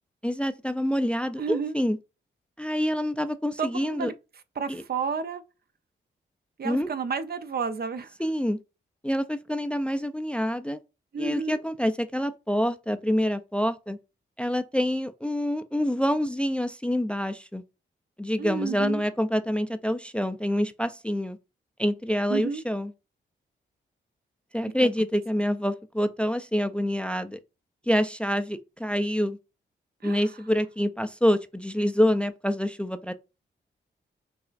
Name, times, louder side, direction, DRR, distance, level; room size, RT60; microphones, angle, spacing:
voice 1, 0.2-2.0 2.6-4.1 4.7-4.8 6.6-6.9 8.2-8.6 9.0-10.8 11.2-14.0 14.4-17.6 18.2-21.4 21.8-22.9 24.5-27.4 27.9-29.4 30.0-33.1, equal, 5° left, 0.4 m, -26 dB
voice 2, 1.4-1.7 3.6-4.1 4.6-5.4 6.6-8.1 11.1-11.6 18.4-19.0 22.3-22.6 24.8-24.9 30.0-30.3, right 5 dB, 50° right, 0.5 m, -31 dB
6.0 x 2.4 x 2.4 m
supercardioid pair, 50°, 20 cm